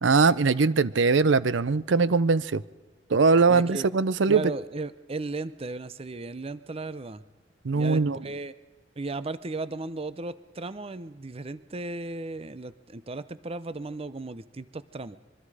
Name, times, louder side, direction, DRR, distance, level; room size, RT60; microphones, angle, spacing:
voice 1, 0.0-2.6 3.1-4.5 7.6-8.2, right 4 dB, 75° right, 18 dB, 0.6 m, -21 dB
voice 2, 3.5-3.9 4.3-7.2 7.7-8.5 9.0-15.2, right 2 dB, 30° right, 15 dB, 0.6 m, -35 dB
25.0 x 23.0 x 4.9 m, 1.2 s
head